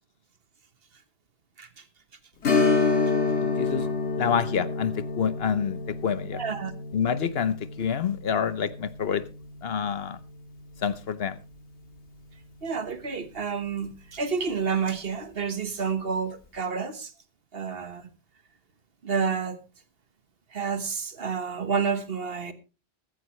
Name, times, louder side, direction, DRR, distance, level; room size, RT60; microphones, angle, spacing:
Strum, 2.4-11.6 11.9-12.0 14.6-14.8 15.2-15.3, left 4 dB, 85° left, 2.5 m, -29 dB
voice 1, 3.3-3.9 4.2-6.4 6.9-9.2 9.6-10.2 10.8-11.4, left 7 dB, 65° left, 1.0 m, -27 dB
voice 2, 6.3-6.7 12.6-17.1 17.5-18.1 19.0-19.6 20.5-22.5, right 5 dB, 60° right, 1.5 m, -29 dB
15.0 x 14.0 x 3.1 m
omnidirectional pair, 1.1 m